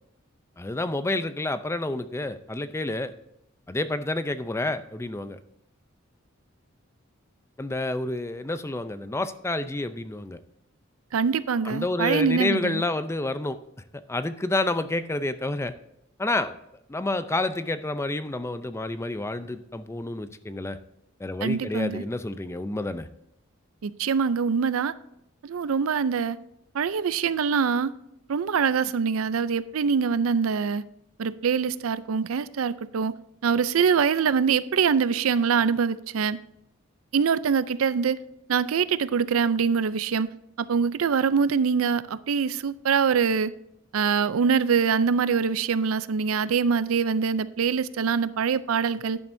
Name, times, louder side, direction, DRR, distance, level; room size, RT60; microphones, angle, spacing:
voice 1, 0.6-3.1 3.7-5.4 7.6-10.4 11.6-13.6 14.1-15.7 16.2-16.6 16.9-20.8 21.2-23.1, left 2 dB, 15° left, 11 dB, 0.5 m, -29 dB
voice 2, 11.1-12.8 21.4-22.0 23.8-24.9 25.4-26.4 26.7-27.9 28.3-30.8 31.2-33.1 33.4-36.4 37.1-38.2 38.5-40.3 40.6-43.5 43.9-49.2, right 6 dB, 80° right, 16 dB, 0.5 m, -24 dB
11.0 x 10.5 x 2.7 m, 0.80 s
head